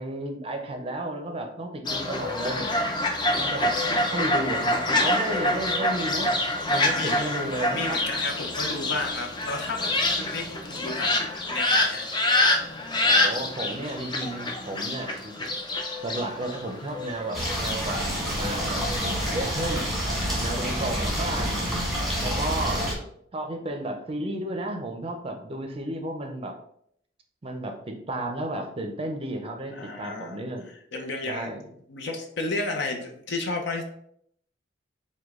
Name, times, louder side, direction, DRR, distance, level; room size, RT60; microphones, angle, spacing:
voice 1, 0.0-2.7 3.3-8.0 10.4-10.8 13.0-15.3 16.0-18.0 18.4-19.0 19.3-19.9 20.3-21.7 22.2-22.9 23.3-26.6 27.4-30.7 31.3-31.7, right 1 dB, 30° right, 4 dB, 0.5 m, -33 dB
Fowl, 1.9-19.5, left 1 dB, 25° left, 0.5 m, -27 dB
voice 2, 7.0-7.4 7.7-12.1 29.7-30.4 30.9-31.5 31.9-33.8, left 2 dB, 65° left, 3 dB, 0.7 m, -33 dB
sound 1, 17.3-22.9, equal, ahead, 1.2 m, -28 dB
4.9 x 2.2 x 3.6 m, 0.69 s
head